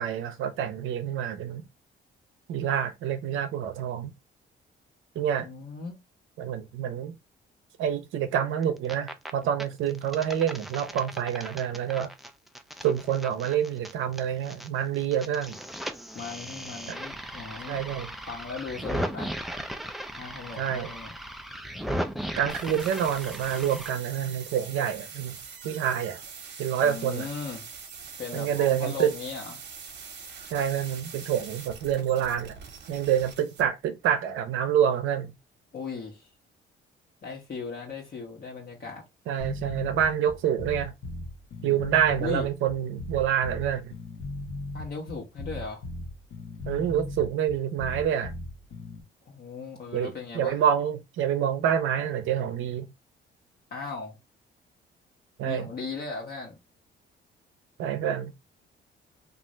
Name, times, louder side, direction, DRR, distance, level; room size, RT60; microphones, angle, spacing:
voice 1, 0.0-1.6 2.5-4.1 5.2-5.5 6.4-7.1 7.8-12.1 12.8-15.6 16.9-17.0 17.7-18.1 20.6-20.9 22.4-25.4 25.6-26.2 26.6-27.3 28.3-29.1 30.5-32.6 32.9-35.3 39.3-40.9 41.6-43.9 46.7-48.3 49.9-52.9 55.4-55.7 57.8-58.3, right 9 dB, 85° right, 0.6 m, -27 dB
voice 2, 5.4-6.0 16.1-17.8 18.3-19.3 20.2-21.2 26.8-27.6 28.2-29.6 35.7-36.3 37.2-39.0 42.2-42.5 44.7-45.8 49.3-50.6 53.7-54.2 55.4-56.6, left 4 dB, 50° left, 1.1 m, -37 dB
sound 1, 8.6-9.3 9.6-14.7 14.9-23.9, equal, ahead, 0.4 m, -37 dB
sound 2, 22.5-33.6, right 6 dB, 60° right, 0.9 m, -43 dB
sound 3, 39.4-49.0, left 2 dB, 70° left, 0.9 m, -37 dB
2.5 x 2.5 x 3.1 m
cardioid pair, 90°, 20 cm